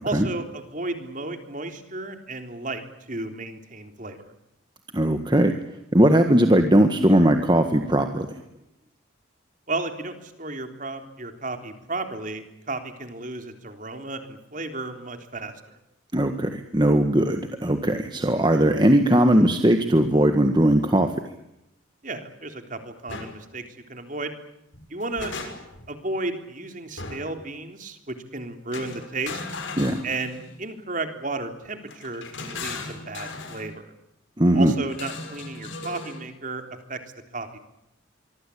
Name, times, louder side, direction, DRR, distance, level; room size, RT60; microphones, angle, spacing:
voice 1, 0.0-2.8 3.1-4.3 9.7-15.8 22.0-23.6 23.9-24.3 24.9-25.3 25.9-29.4 30.0-33.9 34.5-36.6 36.9-37.0 37.3-37.6, right 2 dB, 40° right, 7 dB, 3.6 m, -33 dB
voice 2, 4.9-5.6 5.9-8.3 16.1-21.1 29.8-30.0 34.4-34.8, right 1 dB, 20° right, 6 dB, 1.7 m, -19 dB
sound 1, 23.1-23.3 24.7-25.9 27.0-27.4 28.7-30.6 31.9-33.7 34.9-36.2, left 3 dB, 70° left, 6.1 m, -37 dB
25.0 x 24.5 x 8.6 m, 0.85 s
head